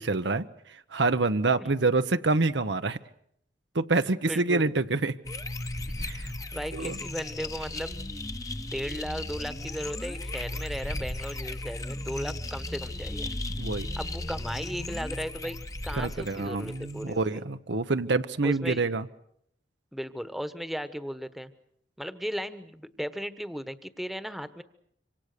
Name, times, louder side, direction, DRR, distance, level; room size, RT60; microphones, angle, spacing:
voice 1, 0.0-3.0 3.7-5.1 6.0-6.3 6.7-7.0 13.6-13.9 15.9-19.1, right 3 dB, 80° right, 10 dB, 0.9 m, -27 dB
voice 2, 4.2-4.6 6.5-8.0 8.7-13.3 14.0-15.6 15.8-17.4 18.4-18.8 19.9-21.5 22.0-24.6, equal, ahead, 12 dB, 1.2 m, -36 dB
sound 1, 5.2-17.2, left 1 dB, 20° left, 1.0 m, -36 dB
26.5 x 25.5 x 6.8 m, 0.71 s
head